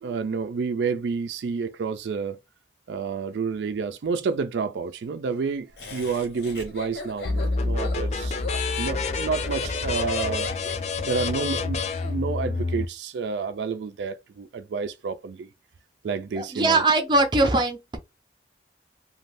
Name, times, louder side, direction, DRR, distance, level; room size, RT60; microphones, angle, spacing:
voice 1, 0.0-2.4 2.9-8.4 8.8-10.5 11.0-15.5 16.0-16.8, right 5 dB, 85° right, 0.4 m, -29 dB
Laughter, 5.8-12.1, left 3 dB, 75° left, 0.9 m, -38 dB
sound 1, 7.2-12.9, left 3 dB, 40° left, 0.3 m, -27 dB
voice 2, 16.3-18.0, right 2 dB, 25° right, 0.5 m, -21 dB
2.5 x 2.3 x 3.3 m
head